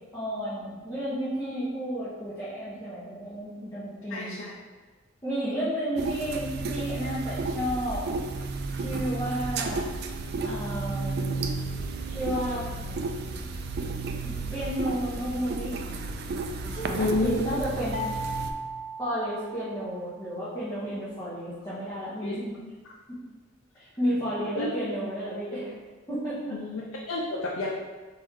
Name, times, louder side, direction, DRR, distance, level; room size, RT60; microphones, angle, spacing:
voice 1, 0.1-4.4 5.2-8.0 8.7-9.8 10.4-11.6 12.1-12.6 14.2-15.8 16.7-18.1 19.0-22.6 23.1-23.2 23.7-25.7 26.1-26.6, equal, 20° left, -13 dB, 1.1 m, -32 dB
voice 2, 4.1-4.5 17.0-17.5 22.2-22.4 24.5-24.7 26.6-27.7, left 2 dB, 70° left, -3 dB, 0.5 m, -29 dB
sound 1, 6.0-18.5, right 3 dB, 50° right, 0.3 m, -32 dB
sound 2, 17.9-20.1, right 1 dB, 75° right, 0.8 m, -36 dB
4.3 x 3.7 x 3.1 m, 1.3 s
head